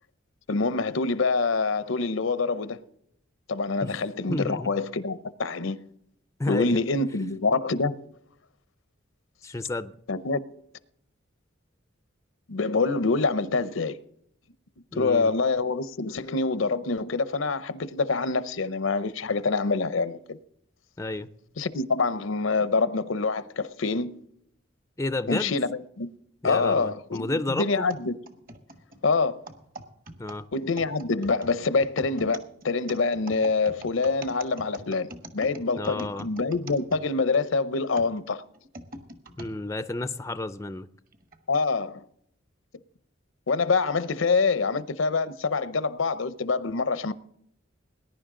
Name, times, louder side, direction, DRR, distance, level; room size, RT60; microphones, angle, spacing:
voice 1, 0.5-2.8 3.5-5.8 6.5-8.0 10.1-10.4 12.5-14.0 14.9-20.4 21.6-24.2 25.3-26.1 26.4-28.1 29.0-29.4 30.5-35.1 35.3-38.4 41.5-42.0 43.5-47.1, left 4 dB, 85° left, 0.7 m, -26 dB
voice 2, 4.3-4.7 6.4-6.8 9.4-9.9 14.9-15.3 21.0-21.3 25.0-25.6 26.4-27.9 30.2-30.4 35.8-36.3 39.4-40.9, left 2 dB, 15° left, 0.4 m, -31 dB
sound 1, 27.9-37.4 38.0-39.5 40.2-40.3 41.1-41.4, right 1 dB, 45° right, 1.4 m, -43 dB
20.0 x 10.5 x 3.8 m
head